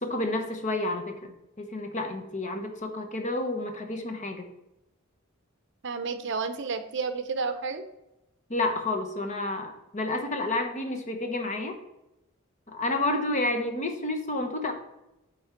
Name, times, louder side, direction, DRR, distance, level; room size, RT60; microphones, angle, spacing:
voice 1, 0.0-1.3 1.6-4.5 8.5-11.8 12.7-14.7, left 2 dB, 35° left, 5 dB, 0.9 m, -30 dB
voice 2, 5.8-7.8, right 4 dB, 55° right, 10 dB, 0.6 m, -31 dB
8.5 x 3.4 x 5.9 m, 0.92 s
head